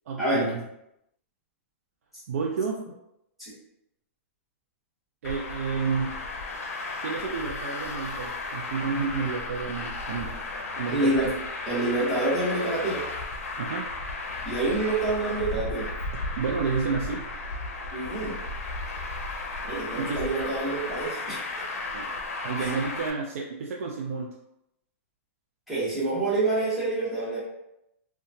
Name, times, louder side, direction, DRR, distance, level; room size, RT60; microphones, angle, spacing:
voice 1, 0.1-0.6 2.3-2.9 5.2-6.2 7.0-10.4 10.8-11.2 13.6-13.9 16.4-17.3 19.9-20.2 21.9-22.1 22.4-24.3, right 5 dB, 80° right, -1 dB, 0.4 m, -30 dB
Traffic noise roadway noise, 5.2-23.1, left 3 dB, 85° left, 0.5 m, -34 dB
voice 2, 10.9-11.3 11.7-13.0 14.4-15.9 17.9-18.4 19.6-21.4 22.6-22.7 25.7-27.4, right 2 dB, ahead, -10 dB, 1.0 m, -27 dB
2.8 x 2.2 x 2.6 m, 0.84 s
hypercardioid pair, 160°, 8 cm